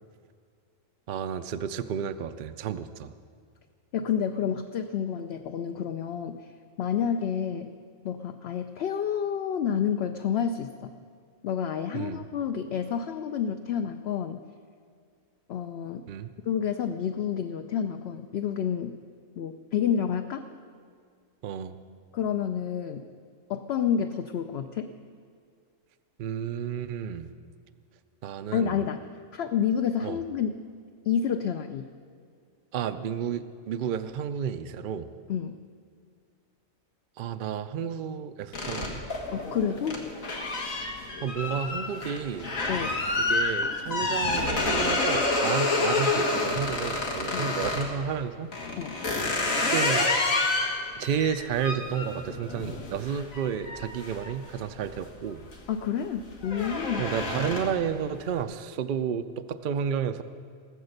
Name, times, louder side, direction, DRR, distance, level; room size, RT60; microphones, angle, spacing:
voice 1, 1.1-3.1 11.9-12.2 16.1-16.3 21.4-21.8 26.2-27.3 28.2-28.8 30.0-30.2 32.7-35.1 37.2-39.0 41.2-42.6 43.2-48.5 49.5-50.1 51.0-55.5 57.0-60.2, right 8 dB, 60° right, 10 dB, 0.5 m, -31 dB
voice 2, 3.9-6.4 6.8-7.7 8.0-10.9 11.4-14.4 15.5-16.0 16.5-18.9 19.4-20.4 22.1-23.1 23.5-24.9 28.5-29.1 29.3-30.6 31.0-31.9 35.3-35.6 39.3-40.1 42.7-43.0 47.3-47.5 48.8-49.0 55.7-57.1, left 8 dB, 60° left, 7 dB, 0.7 m, -29 dB
sound 1, 38.5-47.9 48.5-55.0 55.4-55.7 56.0-57.9, left 2 dB, 85° left, 2.2 m, -28 dB
18.0 x 8.0 x 6.5 m, 2.1 s
omnidirectional pair, 1.4 m